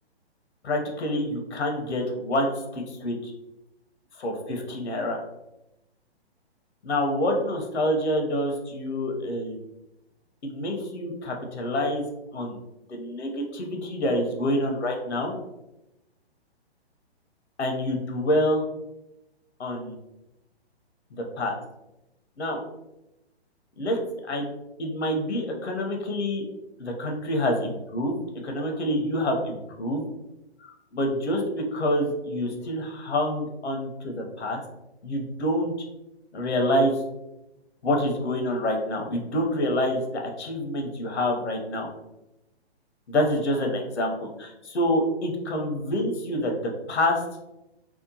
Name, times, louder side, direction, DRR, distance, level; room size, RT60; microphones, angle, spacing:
voice 1, 0.6-3.3 4.2-5.2 6.8-9.6 10.4-12.0 12.3-12.6 12.9-15.3 17.6-18.6 19.6-20.0 21.1-21.6 22.4-22.6 23.8-24.5 24.8-26.4 26.8-30.0 30.6-34.6 35.0-35.7 36.3-36.9 37.8-41.9 43.1-46.5 46.9-47.2, left 1 dB, 85° left, 3 dB, 0.7 m, -27 dB
2.8 x 2.1 x 2.7 m, 0.93 s
hypercardioid pair, 135°, 33 cm